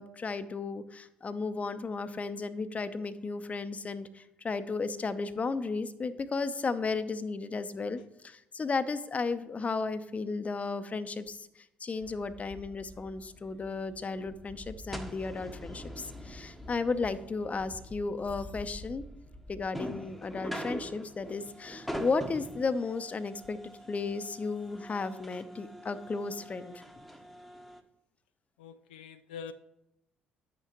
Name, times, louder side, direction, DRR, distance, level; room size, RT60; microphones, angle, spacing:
voice 1, 0.0-19.0 19.5-26.8, left 4 dB, 30° left, 12 dB, 0.8 m, -34 dB
sound 1, 12.0-27.8, equal, ahead, 1.2 m, -44 dB
voice 2, 28.6-29.5, left 7 dB, 75° left, 9 dB, 0.4 m, -44 dB
10.5 x 8.9 x 3.1 m, 0.87 s
figure-of-eight pair, 50°, 5 cm